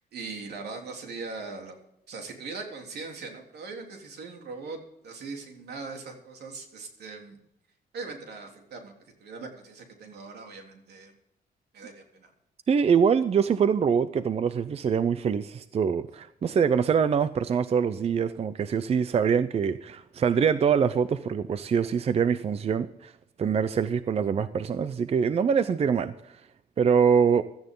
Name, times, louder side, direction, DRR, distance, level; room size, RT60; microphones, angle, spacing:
voice 1, 0.0-4.8 5.0-7.4 7.9-8.9 9.2-11.1 11.7-12.3 16.4-16.6, right 4 dB, 80° right, 2 dB, 3.4 m, -40 dB
voice 2, 12.7-23.1 23.4-26.4 26.8-27.4, right 6 dB, 40° right, 13 dB, 0.6 m, -24 dB
16.5 x 13.0 x 3.8 m, 0.79 s
wide cardioid pair, 155°, 17 cm